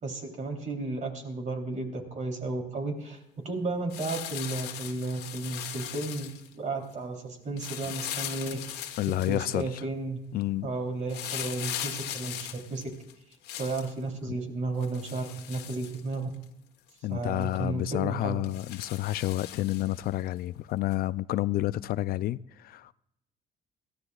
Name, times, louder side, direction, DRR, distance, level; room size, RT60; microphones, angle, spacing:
voice 1, 0.0-8.9 9.2-10.2 10.6-12.4 12.7-12.9 13.6-16.3 17.1-18.4, right 3 dB, 45° right, 3.4 m, -33 dB
sound 1, 3.9-6.5 7.6-9.6 11.1-13.9 14.8-16.4 16.9-17.0 17.4-17.5 18.4-20.1 20.9-21.0, left 11 dB, 80° left, 1.4 m, -39 dB
voice 2, 9.0-9.8 10.3-10.7 17.0-22.9, left 15 dB, 65° left, 0.4 m, -30 dB
22.0 x 15.0 x 2.4 m
cardioid pair, 110°, 17 cm